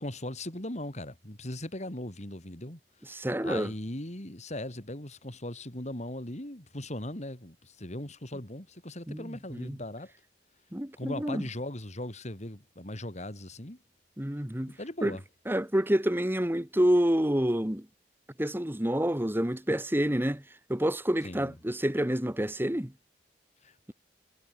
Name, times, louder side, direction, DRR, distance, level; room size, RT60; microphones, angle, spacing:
voice 1, 0.0-2.8 3.4-10.1 11.0-13.8 14.7-15.2 21.2-21.5 23.6-23.9, left 1 dB, 40° left, 4.1 m, -39 dB
voice 2, 3.1-3.7 9.1-9.8 10.7-11.4 14.2-14.8 15.0-15.2 15.5-17.9 18.4-20.4 20.7-22.9, equal, 15° right, 1.5 m, -28 dB
head